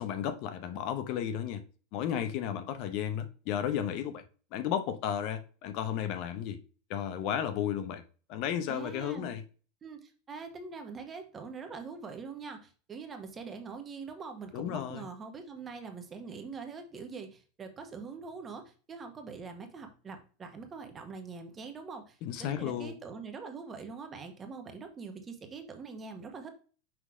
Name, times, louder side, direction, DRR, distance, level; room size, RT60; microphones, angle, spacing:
voice 1, 0.0-1.6 1.9-4.2 4.5-6.6 6.9-8.0 8.3-9.4 14.5-15.1 22.2-23.0, left 9 dB, 55° left, 0.9 m, -33 dB
voice 2, 8.7-9.4 9.8-26.5, right 5 dB, 25° right, 1.4 m, -43 dB
6.1 x 3.1 x 4.9 m
supercardioid pair, 120°, 0 cm